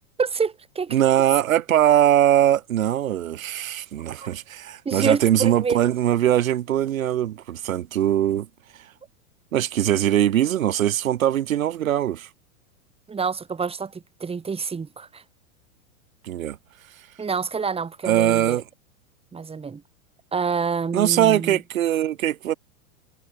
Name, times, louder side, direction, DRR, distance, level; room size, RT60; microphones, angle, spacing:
voice 1, 0.2-1.0 4.2-4.3 4.8-5.8 13.1-15.2 17.2-18.6 19.3-19.8 20.3-21.6, right 5 dB, 15° right, 4.1 m, -27 dB
voice 2, 0.9-8.5 8.7-8.9 9.5-12.3 16.2-16.6 18.0-18.6 20.9-22.5, right 11 dB, 80° right, 3.4 m, -21 dB
hypercardioid pair, 120°, 40 cm